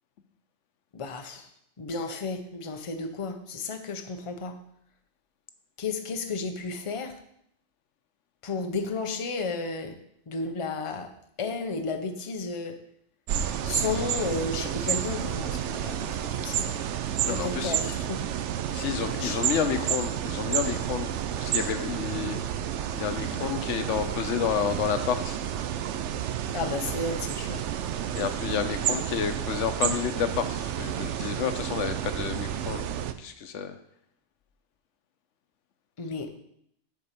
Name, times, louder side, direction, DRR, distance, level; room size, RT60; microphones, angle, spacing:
voice 1, 0.9-1.5 1.8-4.6 5.8-7.2 8.4-10.0 10.3-11.1 11.4-12.8 13.6-16.8 17.3-18.2 19.2-19.4 26.5-27.6 36.0-36.3, left 4 dB, 30° left, 6 dB, 0.7 m, -33 dB
sound 1, 13.3-33.1, right 10 dB, 80° right, 0.9 m, -30 dB
voice 2, 17.2-17.8 18.7-21.1 21.4-22.4 22.9-25.4 28.1-32.9 33.2-33.8, left 8 dB, 90° left, 9 dB, 1.0 m, -30 dB
7.1 x 4.3 x 6.7 m, 0.72 s
omnidirectional pair, 1.2 m